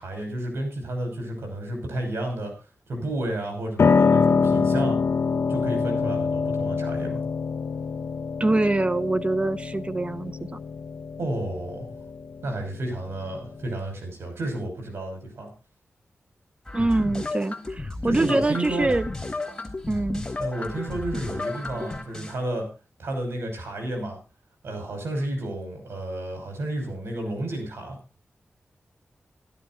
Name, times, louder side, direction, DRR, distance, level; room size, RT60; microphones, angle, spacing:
voice 1, 0.0-2.5 2.9-5.0 5.5-7.2 11.2-11.9 12.4-15.5 18.0-18.9 20.4-22.7 23.0-24.2 24.6-28.0, right 1 dB, 90° right, 5.9 m, -31 dB
Piano, 3.8-13.7, left 5 dB, 75° left, 0.7 m, -25 dB
voice 2, 8.4-10.6 16.7-19.1 19.9-20.3, right 2 dB, 30° right, 0.9 m, -24 dB
sound 1, 16.7-22.4, left 1 dB, 10° left, 3.9 m, -42 dB
sound 2, 16.8-22.0, left 3 dB, 35° left, 1.3 m, -33 dB
12.5 x 12.0 x 4.1 m
wide cardioid pair, 75°, 4 cm